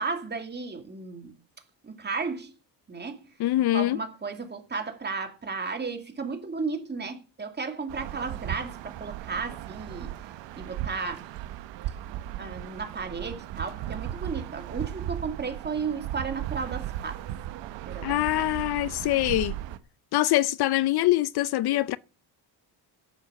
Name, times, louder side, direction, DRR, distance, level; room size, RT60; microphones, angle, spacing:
voice 1, 0.0-1.4 1.8-2.5 2.9-3.2 3.7-10.1 10.6-11.3 12.4-17.2 17.9-18.5, right 4 dB, 25° right, 2.5 m, -34 dB
voice 2, 3.4-4.0 18.0-19.5 20.1-22.0, left 15 dB, 65° left, 0.6 m, -24 dB
sound 1, 7.9-19.8, right 12 dB, 90° right, 1.1 m, -36 dB
11.5 x 7.7 x 6.9 m
cardioid pair, 130°, 42 cm